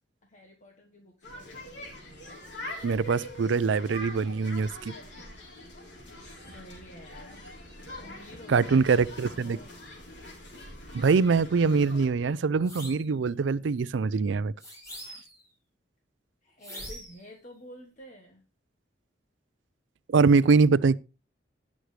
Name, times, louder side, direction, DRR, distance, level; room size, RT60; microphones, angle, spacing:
voice 1, 0.2-1.9 6.2-7.5 8.0-9.7 16.4-18.4, equal, 40° left, 1.3 m, -50 dB
sound 1, 1.2-12.1, left 1 dB, 75° left, 3.7 m, -44 dB
voice 2, 2.8-4.9 8.5-9.6 10.9-14.5 20.1-21.0, right 4 dB, 90° right, 0.4 m, -23 dB
sound 2, 12.6-13.1 14.6-15.4 16.6-17.2, equal, 20° left, 5.6 m, -43 dB
18.0 x 6.3 x 3.2 m
head